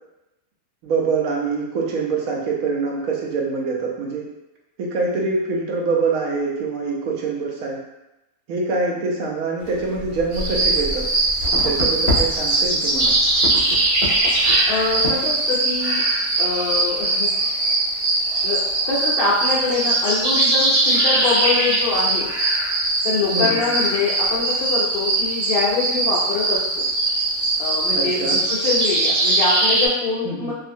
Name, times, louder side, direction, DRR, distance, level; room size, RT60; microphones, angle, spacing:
voice 1, 0.8-4.3 4.8-7.8 8.5-11.1 11.6-13.2 23.3-23.6 27.9-28.4 30.2-30.5, right 4 dB, 70° right, -1 dB, 1.0 m, -24 dB
sound 1, 9.6-15.3, left 1 dB, 45° left, 0.7 m, -30 dB
sound 2, 10.3-29.9, right 2 dB, 30° right, 0.5 m, -21 dB
voice 2, 14.7-16.0 16.4-17.5 18.4-18.6 18.9-22.3 23.0-26.9 27.6-30.5, left 4 dB, 85° left, -6 dB, 0.4 m, -24 dB
2.6 x 2.5 x 2.6 m, 0.95 s
omnidirectional pair, 1.6 m